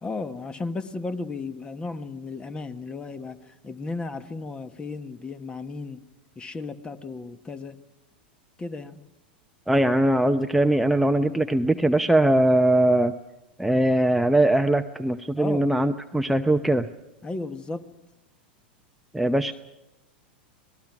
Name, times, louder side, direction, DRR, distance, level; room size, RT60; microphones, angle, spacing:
voice 1, 0.0-3.4 3.6-6.0 6.4-7.8 8.6-9.0 15.4-15.7 17.2-17.8, left 3 dB, 20° left, 12 dB, 1.3 m, -34 dB
voice 2, 9.7-13.1 13.6-16.9 19.1-19.5, right 1 dB, 5° right, 6 dB, 0.8 m, -21 dB
27.0 x 19.5 x 6.1 m, 0.96 s
hypercardioid pair, 95°, 5 cm